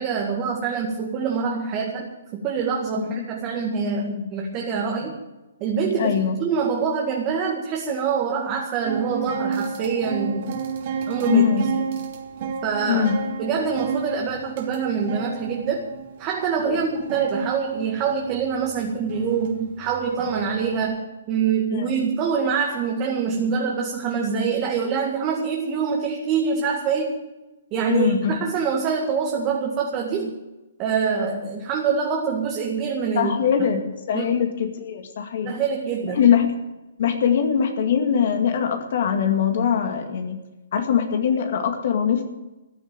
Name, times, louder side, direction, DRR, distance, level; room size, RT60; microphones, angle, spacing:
voice 1, 0.0-5.2 5.6-10.5 11.1-11.4 11.8-11.9 12.6-13.1 13.4-15.9 16.2-27.2 27.7-30.4 30.8-33.3 33.6-33.7 34.1-34.3 35.4-36.2, right 6 dB, 30° right, 0 dB, 2.1 m, -25 dB
voice 2, 6.0-6.3 11.3-11.7 12.9-13.2 16.7-16.8 21.7-21.9 27.9-28.4 33.1-33.8 34.1-35.5 36.2-36.5 37.0-40.4 40.7-42.2, left 8 dB, 55° left, 5 dB, 2.2 m, -21 dB
sound 1, 8.8-20.9, right 6 dB, 50° right, 2.8 m, -32 dB
14.5 x 8.5 x 9.1 m, 1.0 s
hypercardioid pair, 130°, 0 cm